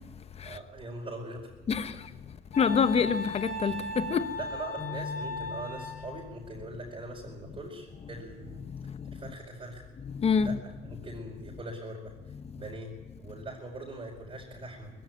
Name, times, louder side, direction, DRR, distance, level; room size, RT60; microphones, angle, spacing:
voice 1, 0.4-1.8 4.4-8.6 9.1-9.8 10.4-10.6 10.8-12.1 12.5-12.9 13.2-14.9, right 2 dB, 30° right, 5.0 m, -41 dB
Wind instrument woodwind instrument, 2.5-6.2, left 1 dB, 55° left, 6.4 m, -37 dB
voice 2, 2.6-4.3 8.8-9.0 10.0-10.6, left 6 dB, 35° left, 1.1 m, -26 dB
sound 1, 4.8-11.0, left 5 dB, 10° right, 5.6 m, -47 dB
20.5 x 15.5 x 9.7 m
cardioid pair, 110°, 17 cm